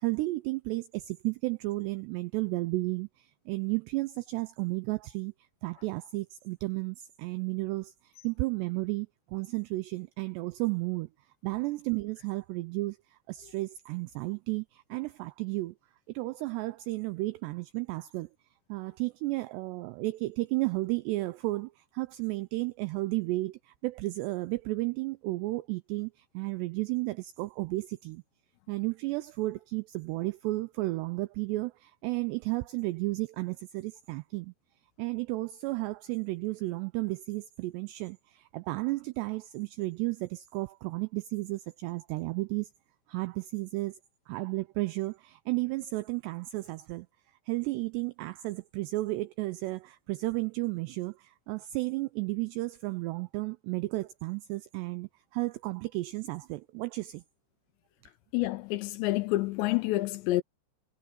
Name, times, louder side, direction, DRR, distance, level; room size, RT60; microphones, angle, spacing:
voice 1, 0.0-5.3 5.6-11.1 11.4-15.8 16.1-18.3 18.7-28.2 28.7-34.5 35.0-42.7 43.1-44.0 44.3-47.1 47.5-57.2, right 21 dB, 85° right, 2.4 m, -33 dB
voice 2, 58.3-60.4, left 18 dB, 80° left, 2.7 m, -28 dB
omnidirectional pair, 5.5 m